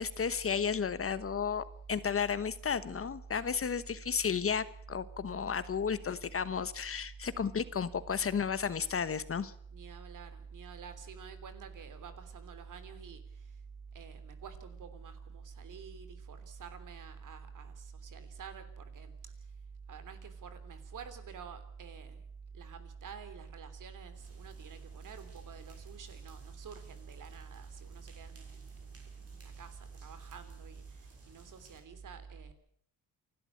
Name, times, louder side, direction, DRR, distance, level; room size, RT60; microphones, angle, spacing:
voice 1, 0.0-9.5, left 6 dB, 40° left, 1.2 m, -33 dB
voice 2, 9.7-13.6 13.9-19.3 19.9-22.2 22.5-32.5, right 6 dB, 60° right, 3.4 m, -47 dB
sound 1, 24.1-31.8, right 3 dB, 45° right, 6.5 m, -59 dB
28.0 x 12.5 x 8.6 m
cardioid pair, 105°, 35 cm